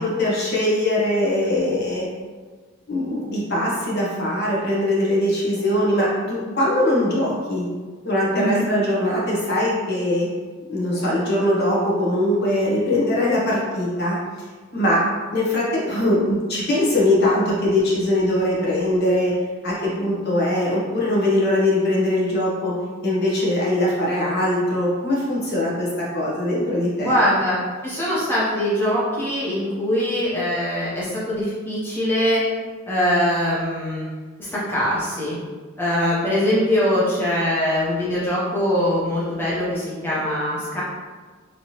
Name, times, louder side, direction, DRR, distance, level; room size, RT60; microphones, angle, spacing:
voice 1, 0.0-2.1 2.9-7.7 8.0-10.3 10.7-14.2 14.7-15.0 15.3-19.3 19.6-22.7 23.0-27.1, left 1 dB, 50° left, -5 dB, 0.9 m, -21 dB
voice 2, 8.3-8.7 27.0-32.4 32.9-34.1 34.4-35.4 35.8-40.8, equal, 10° left, -8 dB, 0.6 m, -22 dB
3.2 x 2.7 x 2.8 m, 1.4 s
head